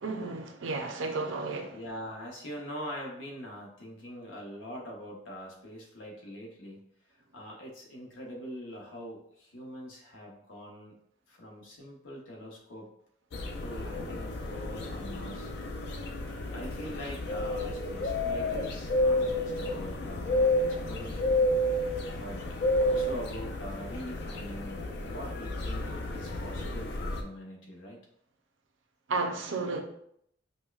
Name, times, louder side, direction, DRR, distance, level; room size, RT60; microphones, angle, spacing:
voice 1, 0.0-1.8 29.1-29.8, right 3 dB, 80° right, 4 dB, 0.6 m, -32 dB
voice 2, 1.7-6.8 7.3-10.9 11.3-12.9 13.6-15.5 16.5-21.4 22.2-22.4 22.8-25.8 26.1-28.0, equal, 85° left, -1 dB, 0.9 m, -43 dB
sound 1, 13.3-27.2, left 1 dB, 60° left, 0.4 m, -31 dB
5.3 x 2.1 x 2.4 m, 0.71 s
head